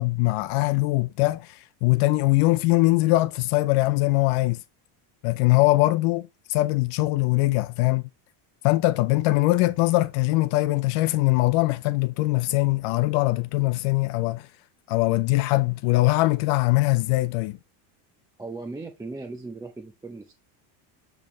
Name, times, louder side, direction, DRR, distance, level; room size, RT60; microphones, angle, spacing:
voice 1, 0.0-4.6 5.2-8.0 8.6-14.4 14.9-17.6, left 20 dB, 80° left, 0.7 m, -22 dB
voice 2, 18.4-20.3, right 3 dB, 10° right, 0.5 m, -37 dB
7.1 x 5.3 x 3.1 m
cardioid pair, 130°, 48 cm